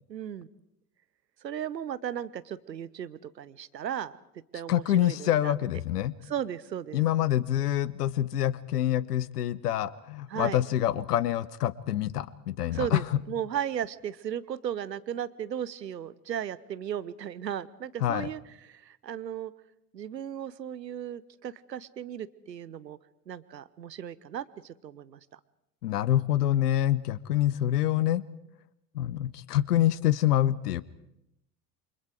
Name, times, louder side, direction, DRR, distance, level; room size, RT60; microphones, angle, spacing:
voice 1, 0.1-0.5 1.4-4.1 4.5-5.5 6.2-7.0 10.3-10.6 12.7-19.5 19.9-23.0 23.3-25.4, right 9 dB, 80° right, 17 dB, 1.0 m, -36 dB
voice 2, 4.7-6.1 6.9-13.1 18.0-18.3 25.8-28.2 28.9-30.8, left 12 dB, 70° left, 19 dB, 1.0 m, -26 dB
28.5 x 25.0 x 4.8 m, 0.83 s
figure-of-eight pair, 70°, 49 cm